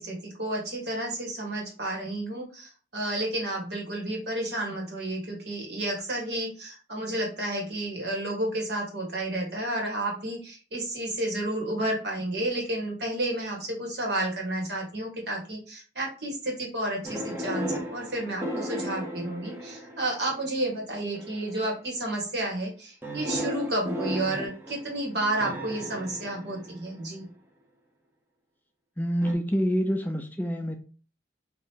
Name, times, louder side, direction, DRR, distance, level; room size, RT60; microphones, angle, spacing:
voice 1, 0.0-27.3, right 1 dB, 60° right, -1 dB, 1.7 m, -31 dB
sound 1, 17.0-20.4 21.1-21.6 23.0-27.1 29.2-29.3, equal, 15° right, 0.7 m, -35 dB
voice 2, 29.0-30.8, equal, 10° left, 4 dB, 0.3 m, -27 dB
5.0 x 2.8 x 2.9 m, 0.37 s
head